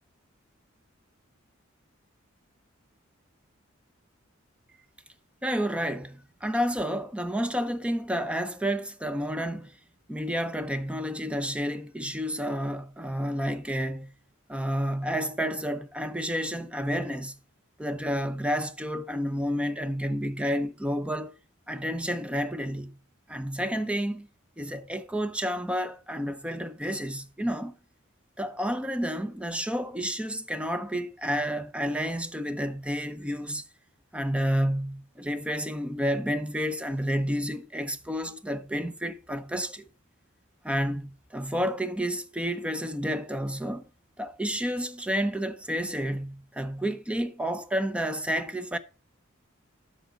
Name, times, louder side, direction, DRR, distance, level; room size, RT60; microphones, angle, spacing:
voice 1, 5.4-9.7 10.1-14.1 14.5-17.3 17.8-21.3 21.7-23.0 23.3-24.3 24.6-27.7 28.4-33.6 34.1-39.8 40.6-43.9 44.2-48.8, equal, 5° right, 0.6 m, -30 dB
12.5 x 6.2 x 3.9 m
head